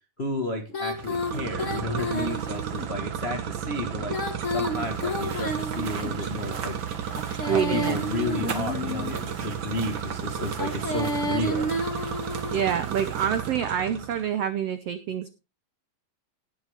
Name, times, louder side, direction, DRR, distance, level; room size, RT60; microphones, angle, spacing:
voice 1, 0.2-4.2 4.5-6.8 7.4-11.7, left 1 dB, 50° left, 4 dB, 0.7 m, -32 dB
Female singing, 0.7-2.9 4.0-6.3 7.1-9.2 10.5-12.7, equal, 35° left, 1.3 m, -31 dB
sound 1, 0.9-14.3, right 8 dB, 65° right, 1.2 m, -33 dB
sound 2, 4.8-13.5, right 5 dB, 45° right, 1.5 m, -42 dB
voice 2, 7.5-8.0 12.5-15.3, right 8 dB, 85° right, 11 dB, 1.3 m, -27 dB
18.0 x 7.6 x 3.5 m, 0.28 s
omnidirectional pair, 4.0 m